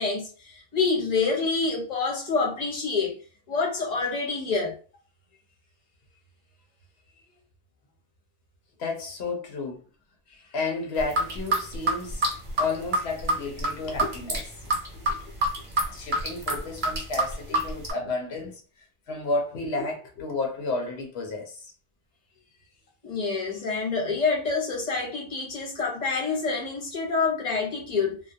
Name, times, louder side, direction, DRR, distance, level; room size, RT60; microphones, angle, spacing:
voice 1, 0.0-3.2 3.5-4.8 23.0-28.2, left 4 dB, 45° left, 0.8 m, -27 dB
voice 2, 8.8-9.8 10.5-12.2 12.6-14.5 14.9-15.2 15.9-18.6 19.1-21.7, left 3 dB, 80° left, 0.9 m, -31 dB
sound 1, 11.0-17.9, right 1 dB, 55° right, 0.8 m, -27 dB
2.2 x 2.1 x 2.6 m
omnidirectional pair, 1.0 m